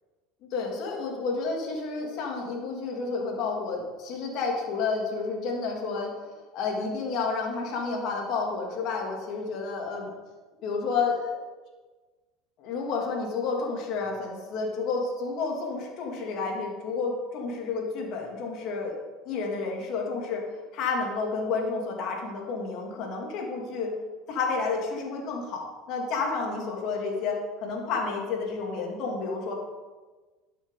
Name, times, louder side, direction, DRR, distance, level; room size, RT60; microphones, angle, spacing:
voice 1, 0.5-6.1 6.5-10.1 10.6-11.3 12.6-19.0 19.2-20.5 20.7-23.9 24.3-29.5, left 4 dB, 60° left, 0 dB, 3.1 m, -30 dB
12.5 x 8.1 x 4.2 m, 1.3 s
supercardioid pair, 100°, 0 cm